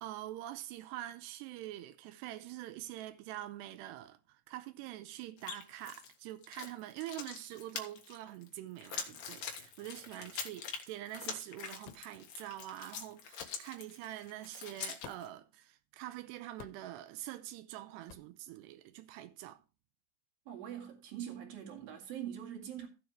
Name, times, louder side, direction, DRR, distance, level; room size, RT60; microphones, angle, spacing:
voice 1, 0.0-19.6, right 14 dB, 90° right, 2.4 m, -45 dB
sound 1, 5.4-6.1 6.4-15.3, left 7 dB, 65° left, 1.8 m, -44 dB
sound 2, 11.9-12.1 13.4-13.6 15.0-15.4 16.6-16.9 18.1-18.3, left 12 dB, 85° left, 3.3 m, -51 dB
voice 2, 20.5-22.9, right 10 dB, 55° right, 3.4 m, -43 dB
15.0 x 7.2 x 3.2 m
omnidirectional pair, 5.6 m